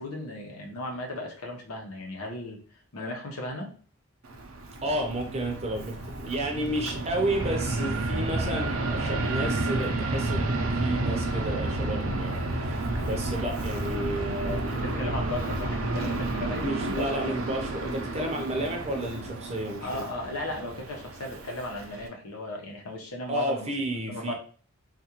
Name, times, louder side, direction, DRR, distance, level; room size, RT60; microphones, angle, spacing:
voice 1, 0.0-2.6 2.9-3.7 14.7-17.4 19.8-23.7 24.1-24.3, left 2 dB, 80° left, 0 dB, 0.9 m, -36 dB
Fixed-wing aircraft airplane, 4.2-22.1, right 2 dB, 70° right, 0.6 m, -31 dB
voice 2, 4.8-14.8 16.6-20.1 23.3-24.3, right 1 dB, 30° right, 2 dB, 0.6 m, -32 dB
3.6 x 2.4 x 2.9 m, 0.43 s
head